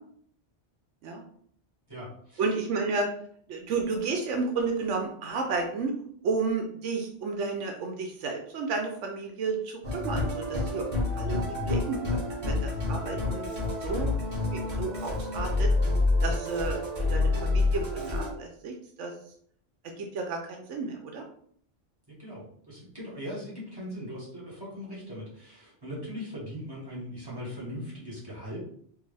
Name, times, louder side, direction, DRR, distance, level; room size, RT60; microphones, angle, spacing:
voice 1, 1.9-2.5 22.1-28.6, equal, 20° right, -7 dB, 1.9 m, -40 dB
voice 2, 2.4-3.1 3.5-5.9 6.2-10.9 11.2-13.5 13.8-14.2 14.5-15.7 16.2-19.1 19.8-21.2, right 4 dB, 80° right, 3 dB, 1.0 m, -32 dB
Musical instrument, 9.8-18.3, left 2 dB, 40° right, 1.3 m, -28 dB
4.6 x 2.6 x 3.3 m, 0.62 s
omnidirectional pair, 1.2 m